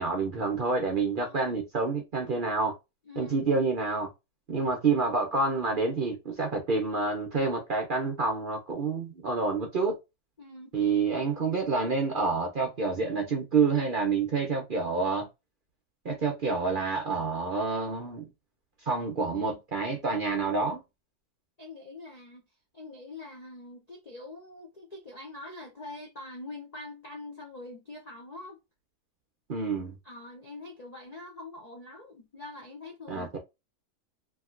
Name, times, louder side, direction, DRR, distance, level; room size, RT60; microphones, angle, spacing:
voice 1, 0.0-2.7 3.2-4.1 4.5-10.0 10.7-15.3 16.0-18.3 18.9-20.8 29.5-29.9 33.1-33.4, right 4 dB, 55° right, 0.6 m, -28 dB
voice 2, 1.2-1.5 3.1-3.4 10.4-10.8 11.4-11.5 21.6-22.4 22.7-28.6 30.0-33.4, left 2 dB, 55° left, 0.4 m, -44 dB
2.8 x 2.8 x 2.4 m
omnidirectional pair, 1.6 m